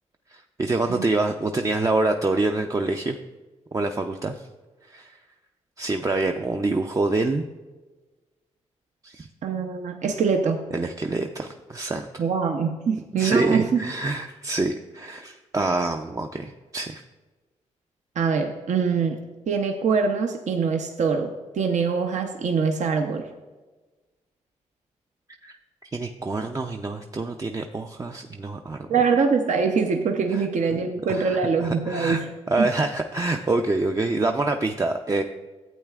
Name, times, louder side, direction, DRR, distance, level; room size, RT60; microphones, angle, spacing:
voice 1, 0.3-3.2 3.7-4.5 4.9-5.2 5.8-7.5 9.0-9.3 10.7-12.2 13.2-17.0 25.4-25.6 25.9-28.9 30.3-30.4 30.7-30.8 31.1-32.2 32.5-35.2, right 2 dB, 25° right, 4 dB, 0.4 m, -26 dB
voice 2, 9.4-10.6 12.2-13.8 18.2-19.2 19.5-23.3 28.9-32.3 32.6-32.7, right 5 dB, 65° right, 5 dB, 0.6 m, -23 dB
12.0 x 8.1 x 2.4 m, 1.3 s
cardioid pair, 65°, 13 cm